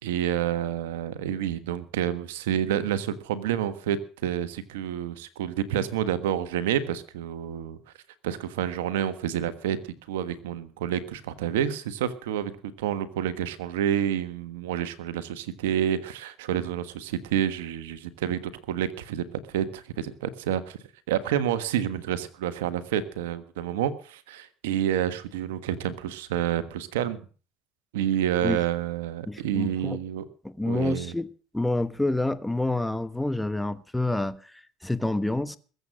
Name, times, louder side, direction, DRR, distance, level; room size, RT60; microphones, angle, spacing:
voice 1, 0.0-7.8 8.2-9.8 10.1-12.5 12.8-18.4 18.7-20.8 21.1-27.2 27.9-30.2 30.7-31.1, right 10 dB, 85° right, 1.4 m, -29 dB
voice 2, 29.3-30.0 30.4-31.3 31.5-35.6, left 2 dB, 5° left, 1.1 m, -28 dB
21.0 x 8.1 x 6.5 m
hypercardioid pair, 75°, 0 cm